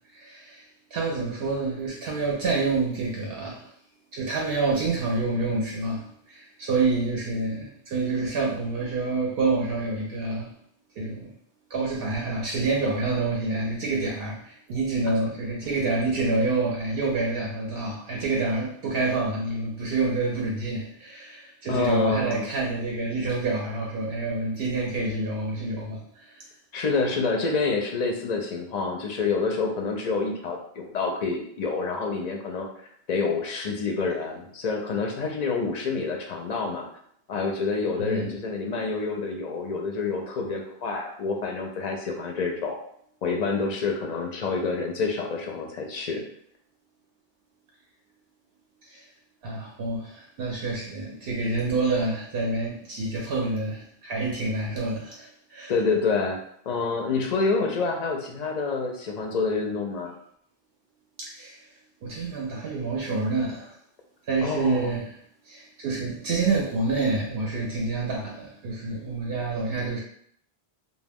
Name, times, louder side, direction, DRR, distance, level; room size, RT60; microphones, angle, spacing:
voice 1, 0.1-0.6 0.9-3.7 4.1-10.5 11.0-11.3 11.7-26.4 38.0-38.3 48.8-49.0 49.4-55.7 61.2-61.6 62.0-63.8 64.3-65.1 65.5-70.0, right 3 dB, 70° right, -2 dB, 0.8 m, -27 dB
voice 2, 21.7-22.4 26.7-32.7 33.1-36.9 37.3-42.8 43.2-46.2 55.7-56.4 56.7-60.1 64.4-64.9, left 4 dB, 55° left, 2 dB, 0.5 m, -27 dB
2.2 x 2.2 x 3.4 m, 0.66 s
omnidirectional pair, 1.0 m